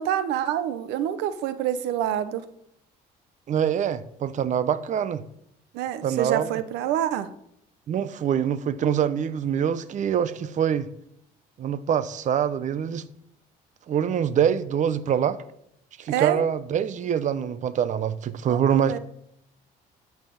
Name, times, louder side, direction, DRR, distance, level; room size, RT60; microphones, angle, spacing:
voice 1, 0.0-2.4 5.7-7.3 16.1-16.4 18.5-19.0, right 10 dB, 90° right, 0.9 m, -27 dB
voice 2, 3.5-5.2 6.0-6.5 7.9-10.9 11.6-13.0 13.9-15.4 16.0-19.0, right 8 dB, 45° right, 0.8 m, -24 dB
12.5 x 6.0 x 7.1 m
cardioid pair, 110°, 17 cm